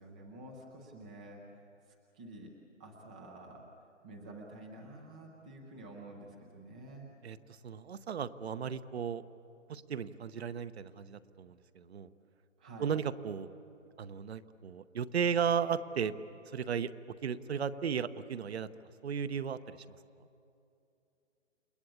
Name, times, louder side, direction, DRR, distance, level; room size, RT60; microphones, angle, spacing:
voice 1, 0.0-1.5 2.1-2.5 2.8-3.7 4.0-7.1 12.6-12.9, right 2 dB, 5° right, 0 dB, 0.5 m, -49 dB
voice 2, 7.2-9.2 9.7-12.1 12.8-13.5 14.0-16.2 16.5-16.9 17.2-18.7 19.0-19.9, right 7 dB, 55° right, 12 dB, 1.0 m, -35 dB
29.0 x 20.5 x 8.6 m, 2.7 s
hypercardioid pair, 155°, 38 cm